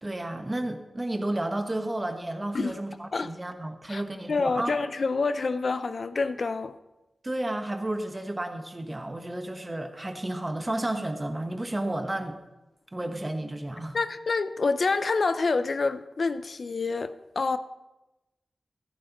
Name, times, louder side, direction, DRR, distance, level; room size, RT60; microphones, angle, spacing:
voice 1, 0.0-4.8 7.2-12.4 12.9-14.0, right 1 dB, 20° right, 1.2 m, -32 dB
voice 2, 4.3-6.8 13.9-17.6, left 4 dB, 55° left, 0.5 m, -27 dB
15.0 x 14.0 x 3.0 m
wide cardioid pair, 125°, 0 cm